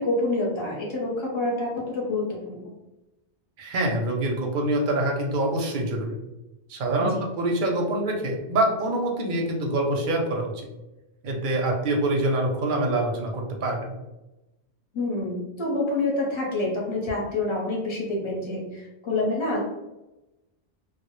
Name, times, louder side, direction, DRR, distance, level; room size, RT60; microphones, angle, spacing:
voice 1, 0.0-2.6 7.0-7.2 14.9-19.6, left 2 dB, 30° left, -3 dB, 0.6 m, -27 dB
voice 2, 3.6-6.2 6.7-10.5 11.2-13.9, right 1 dB, 60° right, 1 dB, 0.6 m, -25 dB
2.1 x 2.0 x 2.9 m, 0.99 s
omnidirectional pair, 1.1 m